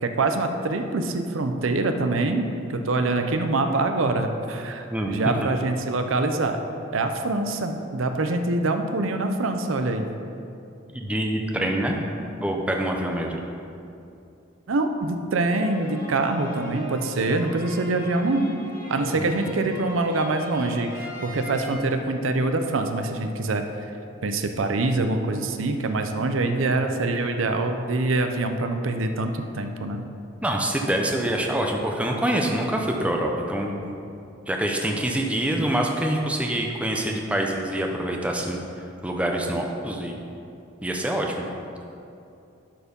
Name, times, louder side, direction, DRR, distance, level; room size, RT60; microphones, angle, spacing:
voice 1, 0.0-6.6 6.9-10.1 14.7-18.5 18.9-23.6 24.2-30.0, right 2 dB, 85° right, 6 dB, 0.6 m, -25 dB
voice 2, 10.9-12.0 12.4-13.4 19.2-19.3 30.4-33.8 34.5-38.6 39.0-40.2 40.8-41.5, right 1 dB, 5° right, 1 dB, 0.6 m, -25 dB
sound 1, 15.4-21.7, equal, 45° left, 2.1 m, -37 dB
11.5 x 4.4 x 5.3 m, 2.7 s
head